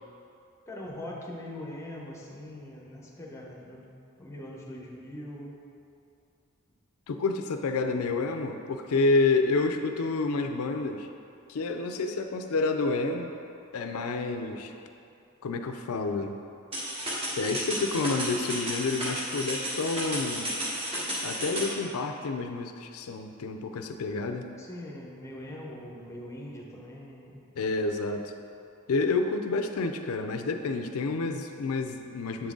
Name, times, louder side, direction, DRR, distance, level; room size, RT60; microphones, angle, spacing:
voice 1, 0.7-3.9 4.2-5.6 24.6-27.4, left 1 dB, 15° left, -3 dB, 0.7 m, -42 dB
voice 2, 7.1-11.1 11.5-13.3 13.7-14.7 15.4-16.4 17.4-20.7 21.2-24.5 27.6-28.3 28.9-32.5, left 3 dB, 75° left, 6 dB, 0.4 m, -29 dB
sound 1, 16.7-21.7, equal, 25° right, 1.1 m, -33 dB
7.5 x 3.8 x 3.6 m, 2.6 s
head